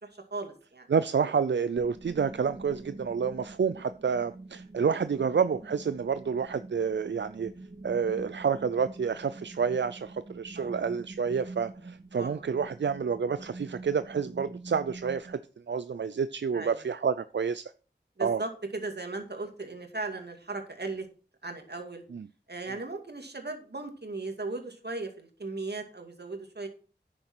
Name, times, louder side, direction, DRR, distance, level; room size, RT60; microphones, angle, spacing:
voice 1, 0.0-0.9 10.5-10.7 12.2-12.4 16.5-16.8 18.2-21.1 21.4-22.0 22.5-26.7, right 3 dB, 65° right, 2.3 m, -37 dB
voice 2, 0.9-7.5 7.8-15.4 15.7-17.7 18.2-18.4 22.1-22.2, right 6 dB, 90° right, 0.4 m, -29 dB
sound 1, 1.7-15.4, right 2 dB, 40° right, 1.6 m, -46 dB
9.7 x 6.7 x 6.0 m
wide cardioid pair, 45°, 18 cm